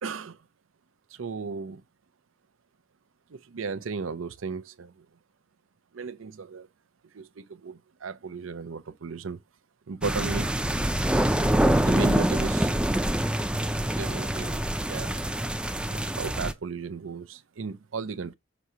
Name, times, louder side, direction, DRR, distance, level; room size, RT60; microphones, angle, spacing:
voice 1, 0.0-0.4 1.1-1.8 3.3-5.0 5.9-6.7 7.1-9.4 9.9-10.5 11.8-12.7 13.8-14.6 14.9-15.1 15.9-18.3, right 5 dB, 75° right, 0.6 m, -35 dB
sound 1, 10.0-16.5, right 1 dB, 5° right, 0.4 m, -25 dB
6.1 x 2.7 x 5.5 m
head